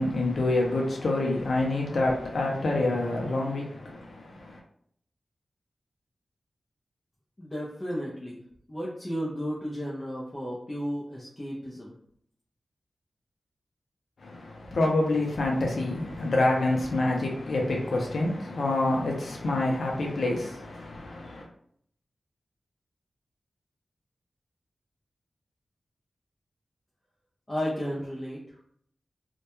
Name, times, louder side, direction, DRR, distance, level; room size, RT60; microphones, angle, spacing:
voice 1, 0.0-4.6 14.2-21.5, left 2 dB, 80° left, 0.4 m, -27 dB
voice 2, 7.4-8.4 8.7-12.0 27.5-28.6, equal, 25° left, 0.5 m, -33 dB
2.2 x 2.1 x 2.9 m
wide cardioid pair, 100°, 0 cm